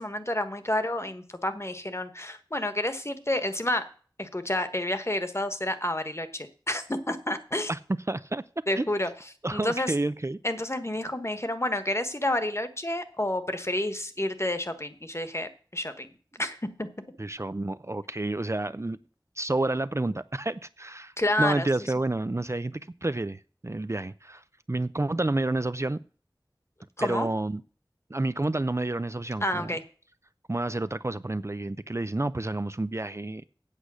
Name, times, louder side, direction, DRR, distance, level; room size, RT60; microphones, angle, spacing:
voice 1, 0.0-3.8 4.2-7.7 8.7-9.1 9.5-9.9 10.4-16.1 16.4-16.9 21.2-21.7 27.0-27.3 29.4-29.8, left 1 dB, 35° left, 1.3 m, -29 dB
voice 2, 8.1-8.4 8.8-8.9 9.4-10.4 17.2-19.0 19.4-26.0 27.0-27.6 28.1-29.8 30.5-33.4, right 2 dB, 35° right, 0.4 m, -29 dB
8.4 x 8.2 x 6.2 m
wide cardioid pair, 40°, 8 cm